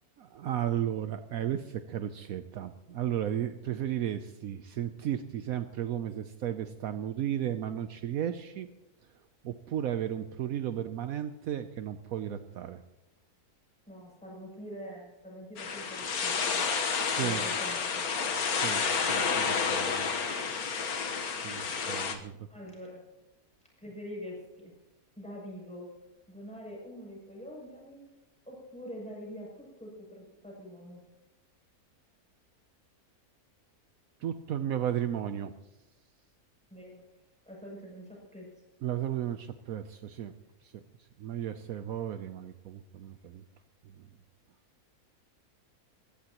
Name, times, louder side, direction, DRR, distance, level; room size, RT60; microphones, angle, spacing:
voice 1, 0.2-8.7 9.4-12.8 17.0-17.4 18.5-20.1 20.6-20.8 21.3-22.5 34.2-35.5 38.8-40.3 40.6-40.8 41.2-43.4 44.0-44.1, right 10 dB, 70° right, 9 dB, 1.1 m, -34 dB
voice 2, 13.9-16.6 17.2-18.0 22.5-23.0 23.8-24.7 25.2-25.9 26.3-28.0 28.4-31.0 36.7-37.0 37.4-38.6, equal, 5° left, -4 dB, 7.4 m, -45 dB
sound 1, 15.6-22.2, left 5 dB, 75° left, 1.7 m, -30 dB
22.0 x 16.0 x 3.0 m, 0.99 s
omnidirectional pair, 1.6 m